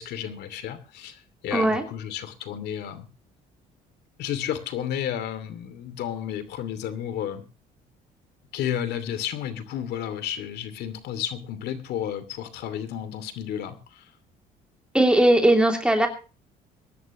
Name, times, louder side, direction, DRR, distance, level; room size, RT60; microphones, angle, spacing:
voice 1, 0.0-3.1 4.2-7.4 8.5-14.1, left 10 dB, 75° left, 12 dB, 2.7 m, -32 dB
voice 2, 1.5-1.8 14.9-16.1, right 1 dB, 5° right, 3 dB, 2.8 m, -19 dB
23.5 x 11.0 x 3.0 m, 0.35 s
cardioid pair, 110°, 17 cm